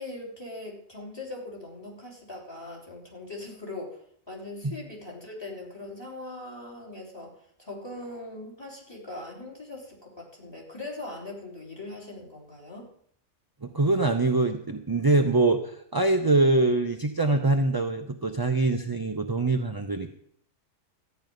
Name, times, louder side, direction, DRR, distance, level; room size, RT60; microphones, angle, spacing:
voice 1, 0.0-4.0 4.3-12.9, left 2 dB, 20° left, -2 dB, 3.2 m, -40 dB
voice 2, 13.6-20.1, right 2 dB, 30° right, 4 dB, 0.4 m, -24 dB
13.5 x 5.4 x 9.3 m, 0.66 s
omnidirectional pair, 1.4 m